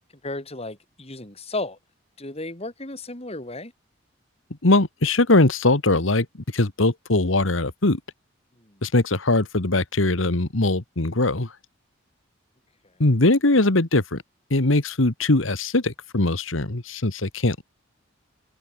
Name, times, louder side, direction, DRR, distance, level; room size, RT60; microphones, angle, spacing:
voice 1, 0.2-1.8 2.2-3.7 8.6-8.8, left 2 dB, 30° left, 3.9 m, -34 dB
voice 2, 4.6-6.3 6.5-8.0 8.8-11.5 13.0-14.2 14.5-17.6, left 2 dB, 70° left, 1.8 m, -21 dB
head